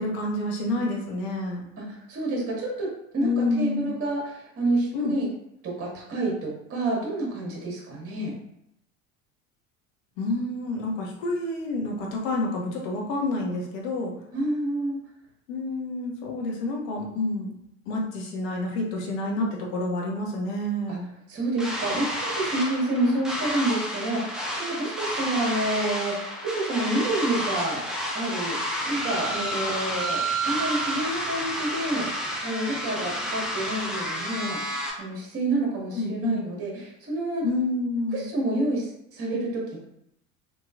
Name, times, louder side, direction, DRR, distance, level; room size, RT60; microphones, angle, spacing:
voice 1, 0.0-1.6 3.2-4.0 4.9-5.2 10.2-14.1 15.5-17.5 17.9-21.1 22.9-23.2 35.9-36.4 37.4-38.3, left 2 dB, 60° left, -1 dB, 1.0 m, -28 dB
voice 2, 1.8-5.3 5.6-8.3 14.3-15.0 20.9-21.0 21.3-27.9 28.1-37.5 38.1-39.8, right 2 dB, 35° right, -3 dB, 1.3 m, -29 dB
sound 1, 21.6-34.9, equal, ahead, 0.7 m, -30 dB
2.9 x 2.8 x 2.4 m, 0.77 s
hypercardioid pair, 75°, 41 cm